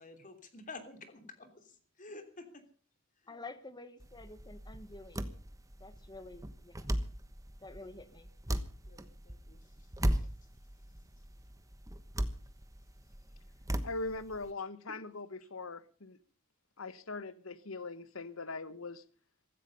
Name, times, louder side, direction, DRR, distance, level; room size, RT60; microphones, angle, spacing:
voice 1, 0.0-2.6 3.2-3.4 7.7-7.9 8.9-9.9 10.2-10.3 14.9-15.0, left 3 dB, 40° left, 8 dB, 3.1 m, -51 dB
voice 2, 3.3-5.3 5.8-6.9 7.6-8.3, left 2 dB, 20° left, 12 dB, 1.4 m, -49 dB
sound 1, 4.0-14.5, equal, 15° right, 1.2 m, -38 dB
voice 3, 13.8-16.2 16.8-19.0, left 3 dB, 75° left, 15 dB, 1.3 m, -41 dB
16.0 x 15.0 x 5.4 m, 0.42 s
head